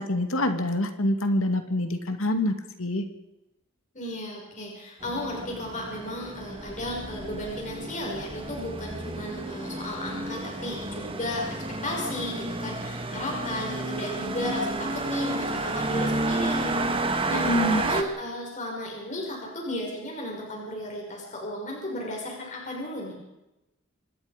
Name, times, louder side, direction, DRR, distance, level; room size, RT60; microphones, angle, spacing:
voice 1, 0.0-3.1 17.3-17.8, left 1 dB, 80° left, 7 dB, 2.5 m, -26 dB
voice 2, 3.9-17.5 17.8-23.1, left 1 dB, 40° left, -1 dB, 6.3 m, -34 dB
sound 1, 5.0-18.0, right 2 dB, 25° right, 1.8 m, -31 dB
25.5 x 19.5 x 5.3 m, 0.94 s
head